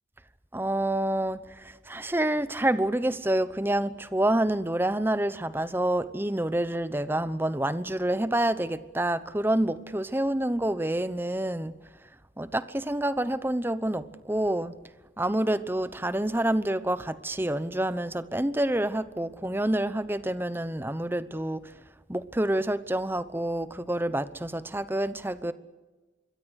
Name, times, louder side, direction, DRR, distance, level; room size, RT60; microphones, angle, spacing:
voice 1, 0.5-11.7 12.4-14.7 15.2-21.7 22.1-25.5, right 1 dB, 10° right, 14 dB, 0.9 m, -28 dB
26.0 x 22.5 x 6.5 m, 1.2 s
head